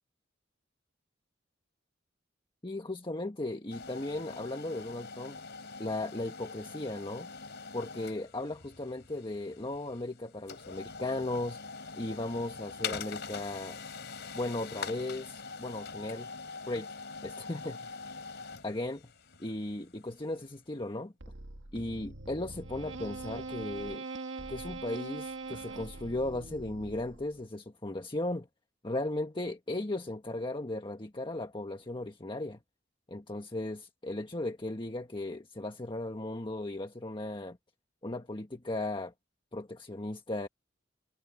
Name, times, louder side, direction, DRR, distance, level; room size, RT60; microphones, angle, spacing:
voice 1, 2.6-5.4 5.8-7.3 7.7-11.6 11.9-13.8 14.3-16.3 16.7-16.9 17.2-17.9 18.6-19.1 19.4-21.1 21.7-24.0 24.5-28.5 28.8-32.6 33.1-37.6 38.0-39.1 39.5-40.5, left 2 dB, 25° left, 1.5 m, -36 dB
sound 1, 3.7-20.6, left 5 dB, 65° left, 4.1 m, -44 dB
sound 2, 21.2-27.4, right 3 dB, 75° right, 2.0 m, -42 dB
head